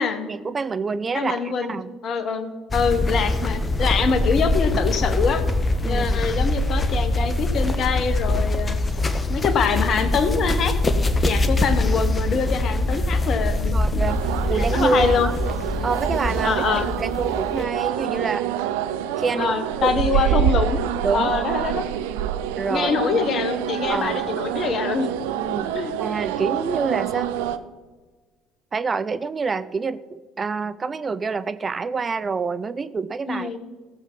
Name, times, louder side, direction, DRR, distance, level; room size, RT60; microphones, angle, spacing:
voice 1, 0.3-1.9 5.8-6.2 13.7-15.3 15.8-18.5 19.2-19.5 19.8-20.5 21.0-21.3 22.6-22.9 23.9-24.3 25.3-25.7 26.0-27.3 28.7-33.6, right 4 dB, 35° right, 15 dB, 0.5 m, -27 dB
voice 2, 1.1-5.4 5.8-8.8 9.3-10.8 11.2-14.1 14.5-15.3 16.4-16.9 19.4-20.8 21.1-21.9 22.7-25.1 25.7-25.9 33.3-33.6, left 6 dB, 50° left, 10 dB, 1.4 m, -24 dB
sound 1, 2.7-17.7, left 2 dB, 30° left, 1.3 m, -23 dB
sound 2, 14.1-27.6, right 10 dB, 75° right, 0.6 m, -26 dB
16.0 x 7.3 x 5.7 m, 1.3 s
hypercardioid pair, 55°, 0 cm